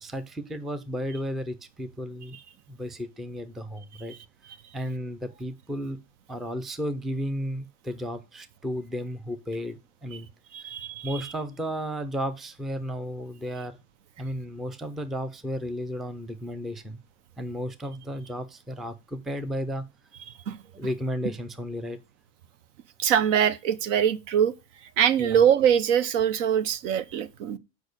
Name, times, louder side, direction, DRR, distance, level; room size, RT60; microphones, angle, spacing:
voice 1, 0.0-2.4 2.7-4.1 4.7-6.0 6.3-10.3 10.6-10.7 11.0-13.8 14.2-17.0 17.4-19.8 20.7-22.0 25.2-25.4, equal, ahead, 0.4 m, -33 dB
voice 2, 10.5-11.2 20.5-20.6 23.0-24.5 25.0-27.6, right 9 dB, 70° right, 0.9 m, -23 dB
6.3 x 5.1 x 6.6 m
supercardioid pair, 125°, 38 cm